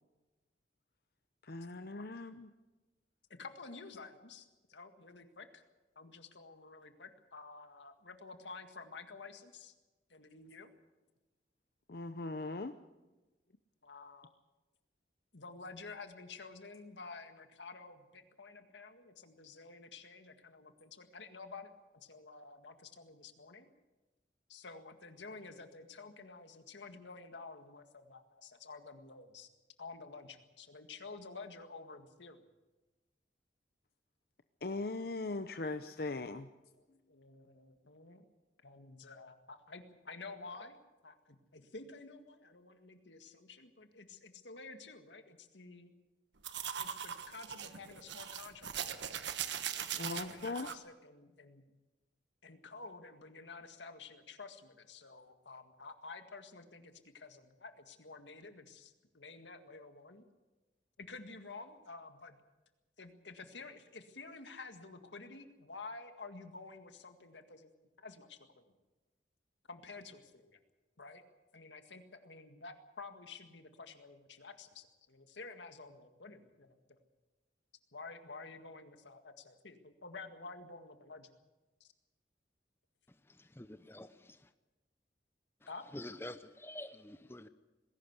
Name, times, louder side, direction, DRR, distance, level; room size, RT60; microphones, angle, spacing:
voice 1, 1.4-2.5 11.9-12.7 34.6-36.5 50.0-50.7, left 3 dB, 55° left, 0.7 m, -39 dB
voice 2, 3.4-5.6 6.0-9.7 10.1-10.7 13.8-14.3 15.3-23.7 24.5-29.5 29.8-32.4 35.9-36.1 36.7-38.2 38.6-40.8 41.0-45.9 46.8-49.1 49.7-51.6 52.4-60.2 61.0-62.4 63.0-67.7 68.0-68.7 69.7-70.6 71.0-71.2 71.5-77.0 77.9-81.3 81.8-81.9 85.7-85.9, left 4 dB, 90° left, 1.9 m, -51 dB
sound 1, 46.4-50.7, right 9 dB, 85° right, 1.2 m, -40 dB
voice 3, 83.1-84.5 85.6-87.5, left 1 dB, 15° left, 0.7 m, -48 dB
20.0 x 17.0 x 8.1 m
head